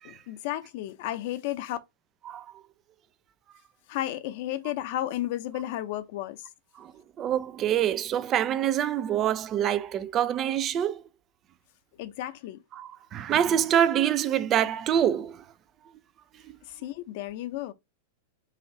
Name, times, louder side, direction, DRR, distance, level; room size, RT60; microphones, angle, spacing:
voice 1, 0.0-1.8 3.9-6.4 12.0-12.6 16.6-17.7, left 13 dB, 60° left, 0.7 m, -33 dB
voice 2, 7.2-11.0 12.8-15.4, right 10 dB, 30° right, 0.4 m, -25 dB
4.2 x 2.5 x 4.0 m
hypercardioid pair, 120°, 0 cm